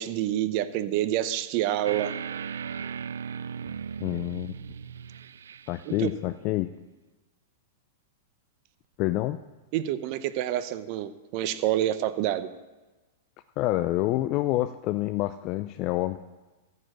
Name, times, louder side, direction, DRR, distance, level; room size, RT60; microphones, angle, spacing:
voice 1, 0.0-2.1 5.9-6.1 9.7-12.5, right 12 dB, 50° right, 12 dB, 0.7 m, -27 dB
sound 1, 1.8-6.1, right 7 dB, 80° right, 0.3 m, -37 dB
voice 2, 4.0-4.5 5.7-6.7 9.0-9.4 13.6-16.2, left 16 dB, 45° left, 10 dB, 0.4 m, -27 dB
14.5 x 5.0 x 7.7 m, 1.2 s
hypercardioid pair, 115°, 0 cm